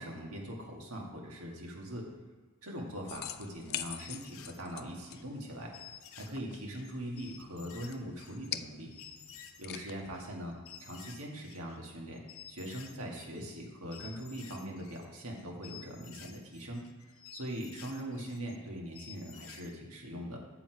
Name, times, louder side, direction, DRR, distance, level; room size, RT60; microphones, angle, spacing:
voice 1, 0.0-2.0 2.6-5.7 6.2-8.9 9.6-12.2 12.5-16.8 17.3-20.4, equal, 90° right, -1 dB, 1.8 m, -41 dB
sound 1, 3.1-10.3, left 11 dB, 45° left, 0.3 m, -45 dB
sound 2, 3.5-5.2 5.7-11.8 12.1-13.7 13.9-19.7, left 8 dB, 70° left, 0.7 m, -53 dB
7.9 x 6.9 x 4.6 m, 1.3 s
head